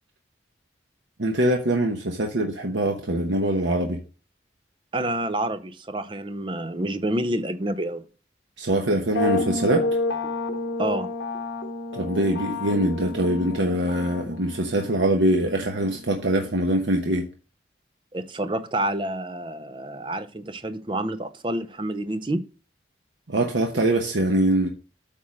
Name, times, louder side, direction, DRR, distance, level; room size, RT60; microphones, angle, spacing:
voice 1, 1.2-4.0 8.6-9.8 11.9-17.3 23.3-24.7, right 1 dB, 80° right, 1.0 m, -23 dB
voice 2, 4.9-8.0 10.8-11.1 18.1-22.5, right 1 dB, 25° right, 0.5 m, -28 dB
sound 1, 9.2-16.8, left 3 dB, 85° left, 1.0 m, -30 dB
8.5 x 3.7 x 6.2 m
head